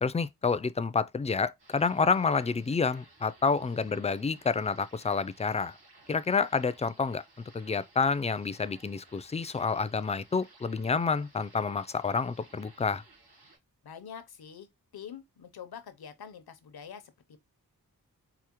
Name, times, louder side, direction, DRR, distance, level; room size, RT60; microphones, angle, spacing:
voice 1, 0.0-5.7 6.1-7.2 7.5-13.0, left 5 dB, 20° left, 0.3 m, -29 dB
sound 1, 1.6-13.6, right 2 dB, 90° right, 2.8 m, -58 dB
voice 2, 13.8-17.4, left 7 dB, 80° left, 0.7 m, -46 dB
4.8 x 2.0 x 2.9 m
cardioid pair, 45°, 37 cm